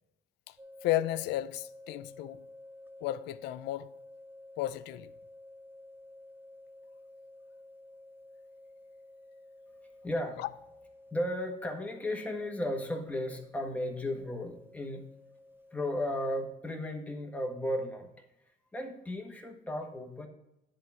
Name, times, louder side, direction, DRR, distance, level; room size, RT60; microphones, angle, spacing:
sound 1, 0.6-16.1, left 1 dB, 10° right, 0.6 m, -53 dB
voice 1, 0.8-2.4 3.0-3.9 4.6-5.1 10.4-10.5, left 14 dB, 90° left, 0.5 m, -33 dB
voice 2, 10.0-10.4 11.1-15.0 15.7-18.1 18.7-20.3, left 1 dB, 10° left, 1.6 m, -35 dB
10.0 x 3.9 x 5.7 m
cardioid pair, 110°, 17 cm